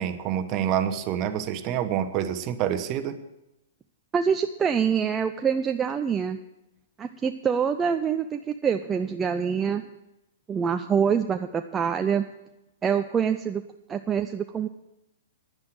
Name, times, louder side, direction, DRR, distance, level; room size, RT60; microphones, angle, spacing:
voice 1, 0.0-3.2, right 10 dB, 40° right, 9 dB, 1.1 m, -27 dB
voice 2, 4.1-6.4 7.0-9.8 10.5-12.3 12.8-13.6 13.9-14.7, right 7 dB, 20° right, 6 dB, 0.5 m, -25 dB
10.5 x 9.7 x 7.6 m, 0.91 s
hypercardioid pair, 125°, 0 cm